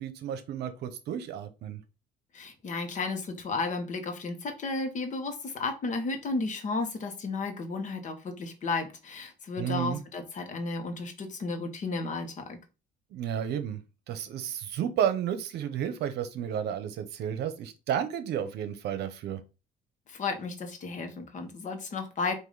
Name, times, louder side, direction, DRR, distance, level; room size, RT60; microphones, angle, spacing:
voice 1, 0.0-1.8 9.6-10.0 13.1-13.8 14.1-19.4, right 9 dB, 70° right, 10 dB, 0.8 m, -32 dB
voice 2, 2.3-12.6 20.1-22.3, left 3 dB, 45° left, 6 dB, 1.1 m, -33 dB
5.0 x 2.7 x 3.9 m, 0.29 s
cardioid pair, 110°, 18 cm